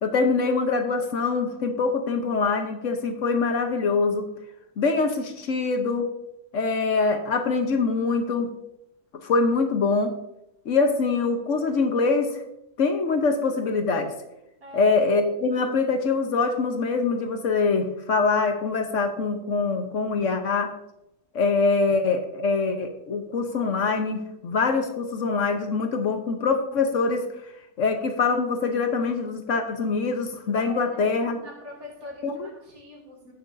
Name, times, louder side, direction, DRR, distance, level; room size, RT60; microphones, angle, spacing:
voice 1, 0.0-4.3 4.8-6.1 6.5-8.5 9.2-10.1 10.6-12.4 12.8-14.1 14.7-20.7 21.3-27.3 27.8-31.4 32.2-32.5, left 4 dB, 60° left, 6 dB, 1.2 m, -24 dB
voice 2, 14.6-15.0 30.6-33.3, left 1 dB, 75° right, -1 dB, 2.9 m, -43 dB
16.0 x 6.3 x 2.6 m, 0.84 s
omnidirectional pair, 1.5 m